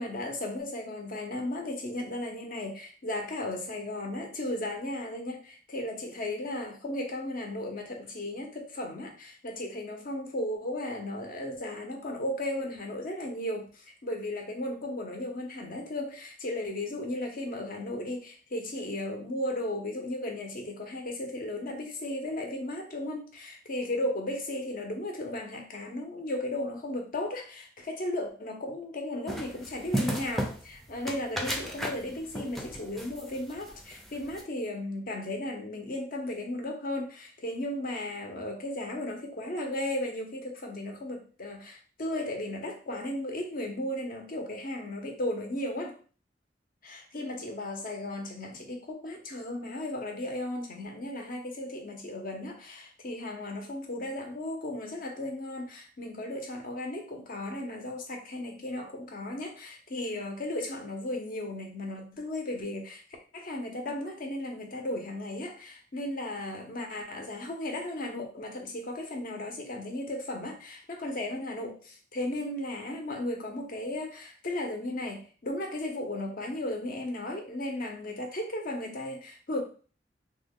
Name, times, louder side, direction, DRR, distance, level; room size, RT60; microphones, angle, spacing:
voice 1, 0.0-46.0 46.8-63.0 63.3-79.6, left 1 dB, 50° left, 3 dB, 0.8 m, -35 dB
sound 1, 29.3-34.4, equal, ahead, 0.5 m, -35 dB
3.1 x 2.3 x 3.6 m, 0.38 s
head